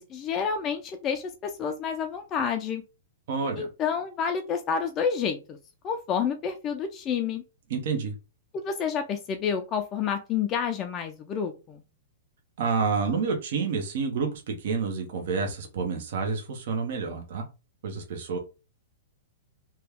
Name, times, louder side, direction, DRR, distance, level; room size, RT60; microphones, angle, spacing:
voice 1, 0.0-2.8 3.6-5.6 5.8-7.4 8.5-11.8, left 7 dB, 25° left, 5 dB, 0.4 m, -29 dB
voice 2, 3.3-3.7 7.7-8.1 12.6-17.4 17.8-18.4, right 5 dB, 60° right, 3 dB, 0.9 m, -29 dB
2.9 x 2.3 x 3.4 m, 0.30 s
hypercardioid pair, 140°, 0 cm